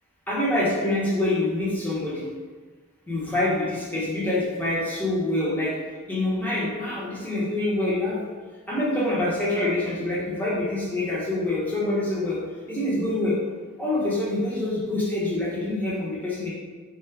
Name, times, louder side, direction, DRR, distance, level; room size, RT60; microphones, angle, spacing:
voice 1, 0.3-2.3 3.1-5.8 6.1-8.2 8.7-12.4 12.7-13.4 13.8-16.5, left 1 dB, 10° left, -7 dB, 0.9 m, -26 dB
3.8 x 2.5 x 4.5 m, 1.4 s
head